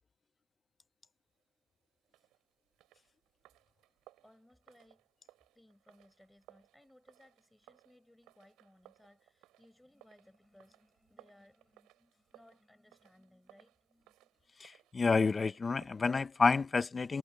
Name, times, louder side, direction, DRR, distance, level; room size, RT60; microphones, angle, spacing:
sound 1, 2.0-16.1, right 16 dB, 75° right, 7.5 m, -64 dB
voice 1, 4.2-5.0 5.5-14.5, left 1 dB, 5° left, 7.9 m, -64 dB
voice 2, 14.6-17.2, left 4 dB, 20° left, 0.8 m, -29 dB
cardioid pair, 130°, 0 cm